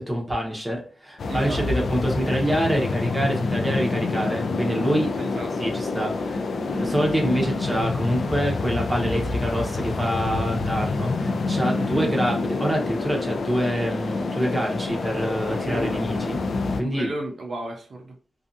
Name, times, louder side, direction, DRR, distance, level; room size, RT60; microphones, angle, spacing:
voice 1, 0.0-5.1 5.6-16.4 16.8-17.1, equal, 10° right, -2 dB, 0.8 m, -26 dB
sound 1, 1.2-16.8, left 3 dB, 70° left, 0.3 m, -27 dB
voice 2, 1.3-1.7 5.2-5.5 11.7-12.1 15.4-15.9 16.9-18.1, right 2 dB, 60° right, 2 dB, 0.4 m, -33 dB
2.6 x 2.3 x 2.5 m, 0.40 s
wide cardioid pair, 120°, 0 cm